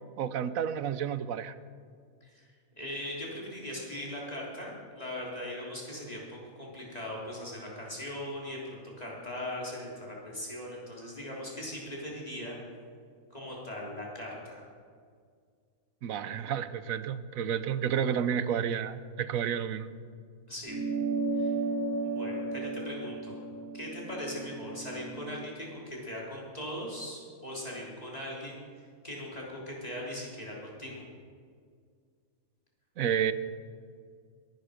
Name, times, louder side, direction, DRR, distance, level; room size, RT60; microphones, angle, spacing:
voice 1, 0.2-1.5 16.0-19.9 33.0-33.3, right 8 dB, 70° right, 13 dB, 1.1 m, -30 dB
voice 2, 2.8-12.6 13.3-14.6 20.5-20.8 21.3-21.5 22.0-23.4 23.7-28.6 29.0-31.0, left 1 dB, 25° left, -4 dB, 3.8 m, -39 dB
sound 1, 20.7-25.5, right 3 dB, 20° right, 0.5 m, -34 dB
21.5 x 11.0 x 5.1 m, 2.1 s
omnidirectional pair, 1.5 m